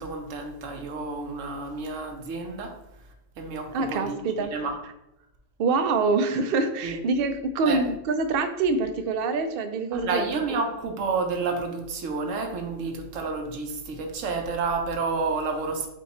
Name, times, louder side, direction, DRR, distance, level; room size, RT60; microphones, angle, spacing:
voice 1, 0.0-2.7 3.4-4.7 6.8-7.0 7.7-7.8 9.9-15.9, right 4 dB, 80° right, 4 dB, 1.1 m, -30 dB
voice 2, 3.7-4.5 5.6-10.3, right 3 dB, 60° right, 8 dB, 0.6 m, -25 dB
5.1 x 2.3 x 4.2 m, 0.88 s
omnidirectional pair, 1.3 m